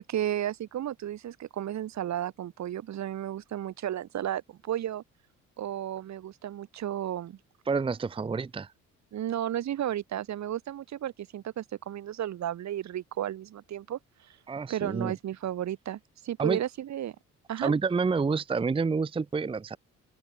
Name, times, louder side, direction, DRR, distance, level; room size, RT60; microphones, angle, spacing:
voice 1, 0.0-5.0 5.6-7.4 9.1-14.4 14.7-17.1 17.5-17.7, right 11 dB, 65° right, 1.6 m, -33 dB
voice 2, 7.7-8.7 14.5-15.1 16.4-16.6 17.6-19.8, right 4 dB, 20° right, 0.6 m, -28 dB
open air
cardioid pair, 90°, 30 cm